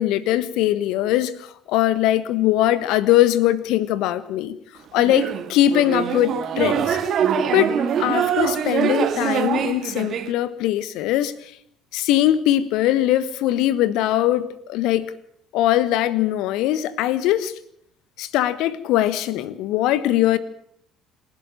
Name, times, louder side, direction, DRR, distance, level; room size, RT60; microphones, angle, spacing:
voice 1, 0.0-4.5 4.9-7.0 7.5-7.7 8.0-11.5 11.9-15.1 15.5-17.5 18.2-20.4, left 13 dB, 60° left, 17 dB, 1.4 m, -21 dB
sound 1, 5.0-10.3, right 8 dB, 45° right, 2.2 m, -23 dB
26.5 x 11.5 x 9.0 m, 0.69 s
figure-of-eight pair, 55°, 0 cm